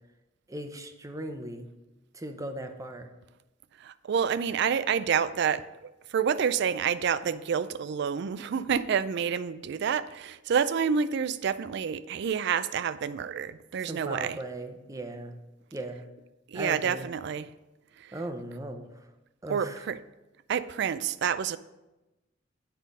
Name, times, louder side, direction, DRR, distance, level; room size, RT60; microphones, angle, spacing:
voice 1, 0.5-1.7 2.1-3.1 13.8-15.3 15.7-16.1 16.5-17.1 18.1-18.9 19.4-19.8, right 1 dB, 15° right, 0.7 m, -38 dB
voice 2, 3.8-14.4 16.5-17.5 18.0-18.1 19.5-20.0 20.5-21.6, right 7 dB, 60° right, 0.4 m, -28 dB
8.3 x 5.7 x 5.2 m
head